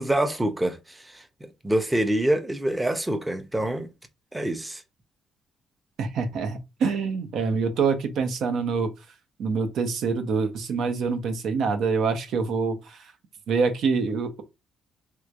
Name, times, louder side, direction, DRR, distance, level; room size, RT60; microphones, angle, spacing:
voice 1, 0.0-3.9 4.3-4.8, right 1 dB, 10° right, 0.6 m, -26 dB
voice 2, 6.0-8.9 9.4-13.1 13.5-14.4, right 5 dB, 75° right, 0.7 m, -25 dB
3.4 x 3.0 x 2.5 m
cardioid pair, 90°, 0 cm